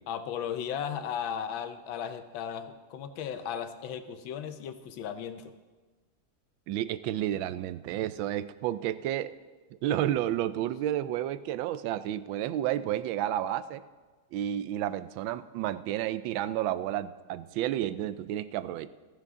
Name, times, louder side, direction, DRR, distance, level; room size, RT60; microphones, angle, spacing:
voice 1, 0.1-5.5, left 8 dB, 85° left, 10 dB, 1.6 m, -36 dB
voice 2, 6.7-9.3 9.8-13.8 14.3-18.9, right 12 dB, 90° right, 14 dB, 1.3 m, -31 dB
15.5 x 13.5 x 3.7 m, 1.3 s
omnidirectional pair, 2.1 m